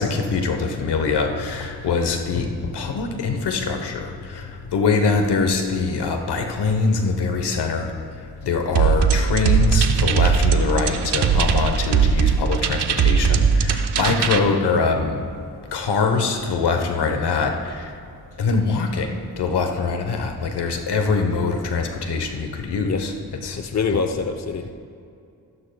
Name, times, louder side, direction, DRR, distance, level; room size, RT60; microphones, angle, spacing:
voice 1, 0.0-7.9 8.4-15.2 15.7-17.9 18.4-23.1 23.4-23.6, left 4 dB, 80° left, 4 dB, 1.1 m, -23 dB
sound 1, 8.8-14.4, right 6 dB, 85° right, 0.7 m, -19 dB
voice 2, 23.6-24.7, left 5 dB, 45° left, 7 dB, 0.8 m, -24 dB
15.0 x 12.5 x 2.3 m, 2.5 s
cardioid pair, 45°, 40 cm